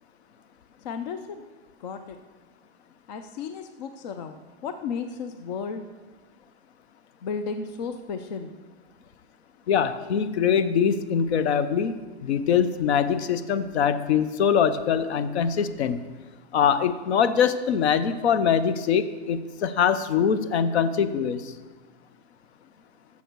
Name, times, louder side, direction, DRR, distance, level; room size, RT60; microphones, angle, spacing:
voice 1, 0.8-1.4 1.8-2.2 3.1-4.4 4.6-5.9 7.2-8.5, left 5 dB, 40° left, 9 dB, 0.5 m, -33 dB
voice 2, 9.7-11.9 12.2-16.0 16.5-21.4, left 7 dB, 80° left, 13 dB, 0.8 m, -23 dB
14.5 x 7.1 x 4.6 m, 1.3 s
supercardioid pair, 160°, 33 cm